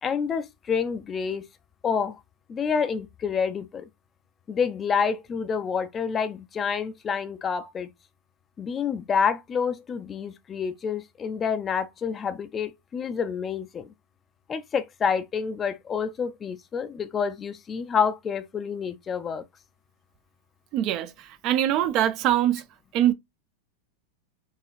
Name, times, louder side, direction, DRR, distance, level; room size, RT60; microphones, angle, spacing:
voice 1, 0.0-1.4 1.8-2.2 2.5-3.9 4.5-7.9 8.6-13.9 14.5-19.4, left 6 dB, 20° left, 0.5 m, -28 dB
voice 2, 20.7-21.1 21.4-22.6 22.9-23.1, right 12 dB, 40° right, 0.5 m, -22 dB
4.6 x 3.1 x 3.0 m
figure-of-eight pair, 90°, 0 cm